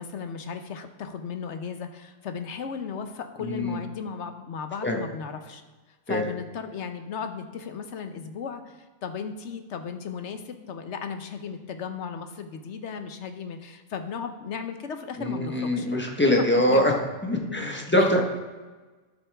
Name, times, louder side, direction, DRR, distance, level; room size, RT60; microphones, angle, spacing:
voice 1, 0.0-5.6 6.1-16.0 16.5-17.0 17.5-17.7 17.9-18.1, left 6 dB, 70° left, 7 dB, 1.1 m, -36 dB
voice 2, 3.4-3.8 4.8-5.0 6.1-6.2 15.2-16.9 17.2-18.2, left 1 dB, 10° left, 1 dB, 1.2 m, -23 dB
12.5 x 6.9 x 3.5 m, 1.3 s
omnidirectional pair, 1.3 m